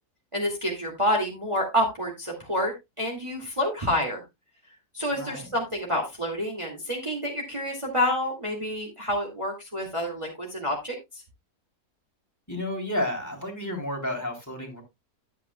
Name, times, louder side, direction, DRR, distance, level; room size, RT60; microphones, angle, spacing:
voice 1, 0.3-4.2 4.9-11.2, equal, 20° right, 2.3 m, -28 dB
voice 2, 5.1-5.5 12.5-14.8, left 1 dB, 10° left, 3.2 m, -31 dB
12.5 x 8.6 x 2.3 m
omnidirectional pair, 1.7 m